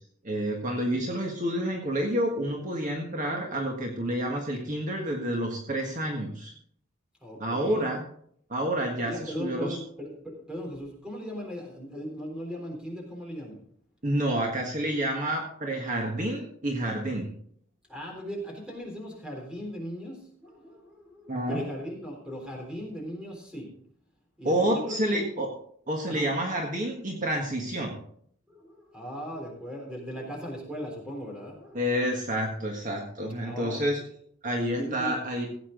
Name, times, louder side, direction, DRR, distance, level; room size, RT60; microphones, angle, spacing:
voice 1, 0.2-6.5 7.4-8.0 8.5-9.8 14.0-17.3 21.3-21.6 24.4-25.5 25.9-28.0 31.7-34.0 34.4-35.5, right 1 dB, 40° right, 1 dB, 1.6 m, -29 dB
voice 2, 7.2-7.9 9.0-13.6 17.9-23.7 24.4-25.4 26.1-26.3 28.5-32.0 33.4-34.1 34.8-35.3, equal, 5° right, 0 dB, 3.7 m, -38 dB
16.5 x 8.8 x 3.9 m, 0.64 s
head